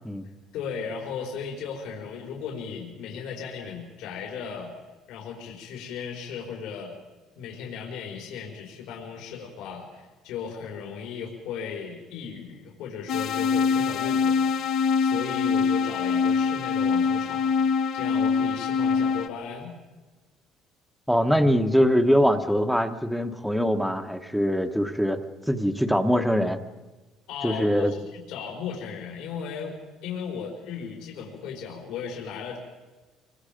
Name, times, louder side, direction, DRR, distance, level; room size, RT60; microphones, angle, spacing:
voice 1, 0.5-4.7 5.1-7.0 7.4-14.5 14.7-19.7 27.3-32.6, left 6 dB, 80° left, 0 dB, 4.5 m, -36 dB
sound 1, 13.1-19.3, left 5 dB, 55° left, 1.0 m, -24 dB
voice 2, 21.1-25.2 25.5-26.6 27.4-27.9, equal, ahead, 7 dB, 1.1 m, -23 dB
25.5 x 24.0 x 5.2 m, 1.2 s
cardioid pair, 145°, 0 cm